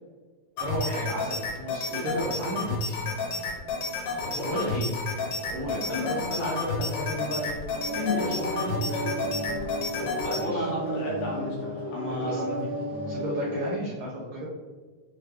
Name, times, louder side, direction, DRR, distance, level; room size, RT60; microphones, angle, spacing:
sound 1, 0.6-10.4, left 3 dB, 90° left, 2.9 m, -31 dB
voice 1, 0.6-3.0 4.4-4.9 5.5-5.9 10.4-10.7 12.2-12.4 13.1-14.5, right 1 dB, 80° right, -4 dB, 1.6 m, -33 dB
voice 2, 4.2-4.9 5.9-7.5 8.0-9.1 10.0-12.7, left 1 dB, 70° left, -5 dB, 2.3 m, -32 dB
sound 2, 7.7-13.7, right 1 dB, 65° right, 0.8 m, -33 dB
6.6 x 2.2 x 3.1 m, 1.4 s
omnidirectional pair, 4.2 m